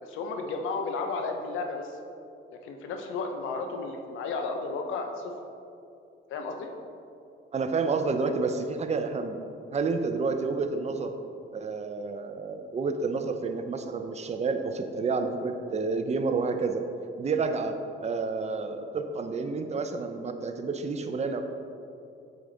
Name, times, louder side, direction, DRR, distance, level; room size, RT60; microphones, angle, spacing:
voice 1, 0.0-2.0 2.6-5.3 6.3-6.7, left 4 dB, 85° left, 4 dB, 0.8 m, -33 dB
voice 2, 7.5-9.4 9.7-11.1 11.5-16.8 17.2-21.4, right 4 dB, 35° right, 6 dB, 0.6 m, -29 dB
7.8 x 5.0 x 4.0 m, 2.6 s
cardioid pair, 90°, 20 cm